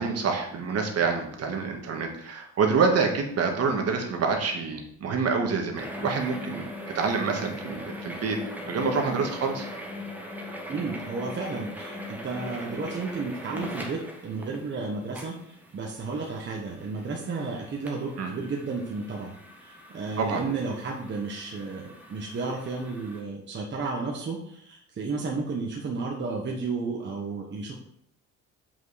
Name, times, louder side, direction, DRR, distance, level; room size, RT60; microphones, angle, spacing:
voice 1, 0.0-6.7 6.9-8.4 8.7-9.7 18.2-18.3 20.2-20.4, right 5 dB, 50° right, 3 dB, 1.6 m, -27 dB
sound 1, 5.8-23.2, left 1 dB, 5° right, 1.4 m, -40 dB
voice 2, 10.7-19.3 19.6-27.7, right 4 dB, 35° right, -1 dB, 1.2 m, -33 dB
7.4 x 5.5 x 4.2 m, 0.72 s
cardioid pair, 110°, 31 cm